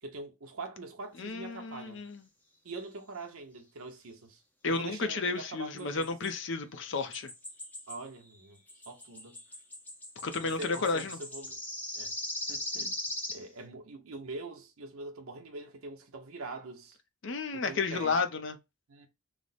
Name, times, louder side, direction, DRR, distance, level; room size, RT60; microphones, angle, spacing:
voice 1, 0.0-2.0 2.6-6.1 7.9-9.4 10.4-11.6 11.9-12.1 12.5-12.9 13.3-17.0 17.5-18.2 18.9-19.1, right 3 dB, 90° right, 0.8 m, -43 dB
voice 2, 1.2-2.2 4.6-7.3 10.2-11.2 17.2-18.6, left 4 dB, 60° left, 0.5 m, -32 dB
sound 1, 5.8-6.3 7.1-8.0 8.3-13.5, left 1 dB, 10° left, 0.5 m, -40 dB
3.2 x 2.1 x 3.9 m
head